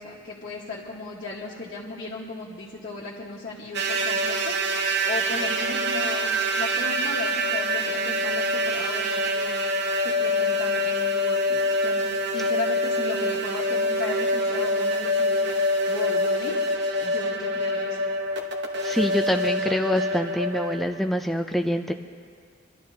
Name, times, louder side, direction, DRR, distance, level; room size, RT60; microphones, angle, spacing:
voice 1, 0.0-4.6 5.1-9.6 10.0-15.3 15.9-16.6 17.0-18.0, left 3 dB, 50° left, -7 dB, 1.4 m, -36 dB
sound 1, 3.7-20.8, equal, 55° right, 1.0 m, -25 dB
voice 2, 18.8-21.9, equal, ahead, 4 dB, 0.3 m, -25 dB
27.0 x 12.0 x 2.8 m, 2.1 s
head